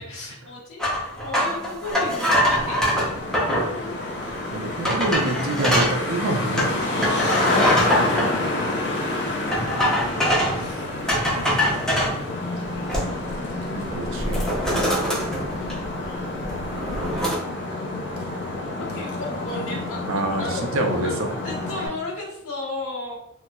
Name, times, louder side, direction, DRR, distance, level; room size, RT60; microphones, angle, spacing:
voice 1, 0.1-3.3 3.7-4.0 7.9-10.1 10.5-10.9 12.3-13.2 16.9-17.4 18.2-18.5 18.9-20.0 20.4-20.6 21.0-21.1 21.4-23.2, left 2 dB, 75° left, -5 dB, 1.2 m, -36 dB
sound 1, 0.8-3.7 4.3-4.4 4.8-6.0 6.6-8.3 9.5-10.6 11.1-12.2 12.6-13.3 13.6-13.8 14.2-16.1 16.4-17.4, equal, 5° left, 0.6 m, -23 dB
Traffic noise roadway noise, 1.9-21.9, left 2 dB, 55° left, 0.6 m, -28 dB
voice 2, 4.2-6.7 13.7-14.4 20.1-21.3, right 2 dB, 65° right, 3 dB, 0.5 m, -27 dB
4.0 x 2.1 x 2.2 m, 0.82 s
head